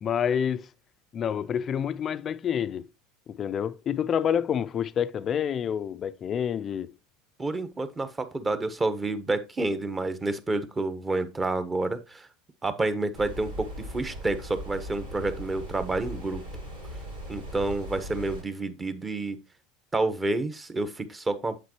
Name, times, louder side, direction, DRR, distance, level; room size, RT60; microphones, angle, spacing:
voice 1, 0.0-0.7 1.1-2.9 3.3-6.9 17.3-17.4, left 8 dB, 40° left, 0.5 m, -28 dB
voice 2, 7.4-12.3 12.6-16.4 17.3-19.4 19.9-21.6, right 2 dB, 20° right, 1.2 m, -29 dB
sound 1, 13.1-18.4, equal, 90° right, 4.1 m, -39 dB
8.4 x 7.3 x 3.1 m
hypercardioid pair, 80°, 0 cm